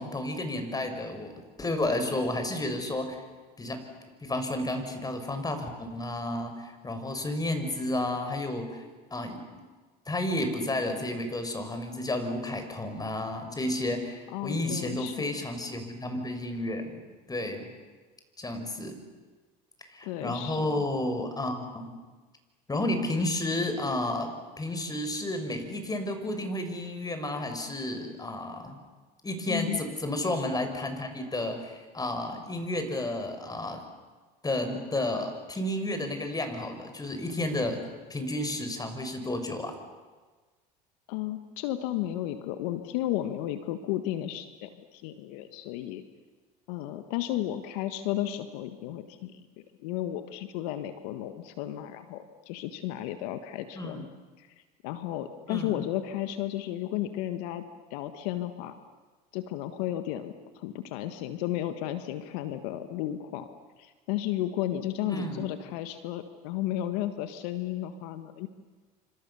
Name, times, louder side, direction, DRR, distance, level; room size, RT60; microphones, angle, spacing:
voice 1, 0.0-3.2 3.6-3.9 4.2-8.8 9.1-9.4 10.1-17.0 17.3-17.7 18.4-19.0 19.8-21.9 22.7-24.3 24.6-28.8 29.2-33.8 34.4-39.8 53.8-54.0 55.5-55.8 65.1-65.5, left 1 dB, 20° left, 7 dB, 6.1 m, -32 dB
voice 2, 14.3-15.3 20.0-20.8 29.5-29.8 41.1-46.0 46.7-49.5 49.8-54.1 54.4-54.5 54.8-57.6 57.9-58.8 59.3-63.5 63.8-68.5, left 13 dB, 75° left, 9 dB, 1.6 m, -33 dB
29.0 x 26.5 x 7.1 m, 1.3 s
hypercardioid pair, 80°, 21 cm